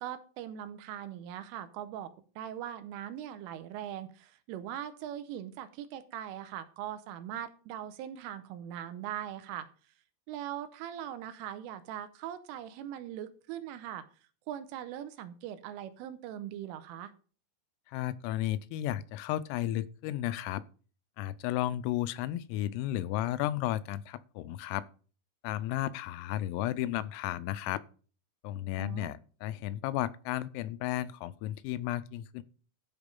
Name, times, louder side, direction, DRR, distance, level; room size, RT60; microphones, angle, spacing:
voice 1, 0.0-9.7 10.3-14.1 14.5-17.1 28.8-29.1, right 11 dB, 85° right, 3.2 m, -41 dB
voice 2, 17.9-20.6 21.2-24.9 25.4-27.8 28.4-32.4, left 14 dB, 85° left, 3.2 m, -33 dB
13.0 x 5.2 x 5.3 m
omnidirectional pair, 6.0 m